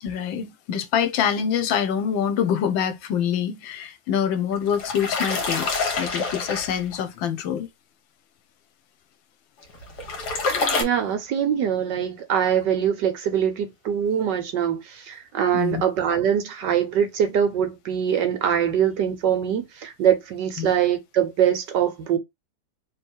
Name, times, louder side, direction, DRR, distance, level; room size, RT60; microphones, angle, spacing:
voice 1, 0.0-7.7 15.5-15.8 20.6-20.7, left 8 dB, 80° left, 1.5 m, -25 dB
sound 1, 4.5-7.0 9.6-10.8, left 4 dB, 60° left, 1.8 m, -26 dB
voice 2, 10.8-22.2, right 9 dB, 70° right, 1.3 m, -23 dB
3.3 x 3.1 x 4.4 m
omnidirectional pair, 2.1 m